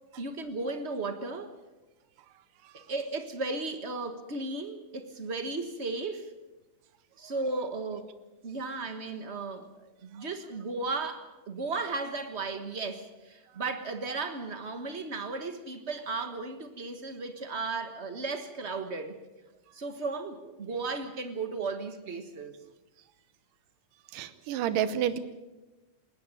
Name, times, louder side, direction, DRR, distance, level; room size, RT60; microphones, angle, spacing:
voice 1, 0.2-1.6 2.7-6.3 7.2-8.1 8.4-19.2 19.7-22.5, right 3 dB, 60° right, 8 dB, 0.7 m, -35 dB
voice 2, 24.1-25.2, right 10 dB, 85° right, 12 dB, 2.7 m, -30 dB
21.0 x 18.0 x 9.0 m, 1.1 s
omnidirectional pair, 3.7 m